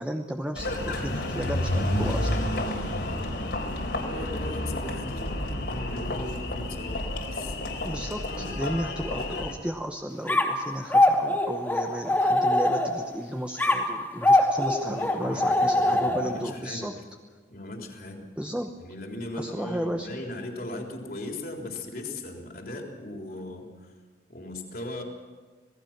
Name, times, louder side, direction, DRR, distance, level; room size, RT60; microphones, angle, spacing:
voice 1, 0.0-2.4 7.8-17.0 18.4-18.7 19.4-20.2, equal, 5° right, 4 dB, 1.0 m, -34 dB
Engine, 0.6-9.5, left 1 dB, 70° left, 4.1 m, -30 dB
voice 2, 4.0-7.7 14.8-17.1 17.5-18.3 18.8-23.9 24.3-25.0, left 1 dB, 55° left, 1 dB, 3.8 m, -38 dB
sound 1, 10.3-13.1 13.6-16.5, left 1 dB, 10° left, 2.7 m, -23 dB
27.0 x 18.5 x 6.0 m, 1.4 s
head